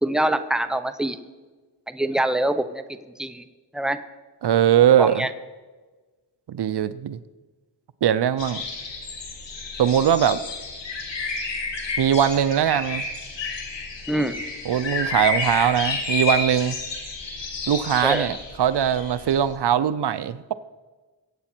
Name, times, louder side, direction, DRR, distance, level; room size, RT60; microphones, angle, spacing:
voice 1, 0.0-1.2 1.9-2.8 3.2-3.4 3.7-4.0 5.0-5.3 14.1-14.4 18.0-18.3, right 1 dB, ahead, 9 dB, 0.9 m, -24 dB
voice 2, 4.4-5.3 6.5-7.2 8.0-8.6 9.8-10.4 12.0-13.1 14.7-16.8 17.7-20.5, right 9 dB, 70° right, 15 dB, 0.6 m, -21 dB
sound 1, 8.4-19.6, left 3 dB, 90° left, 2.3 m, -30 dB
22.5 x 8.7 x 4.5 m, 1.3 s
cardioid pair, 70°, 42 cm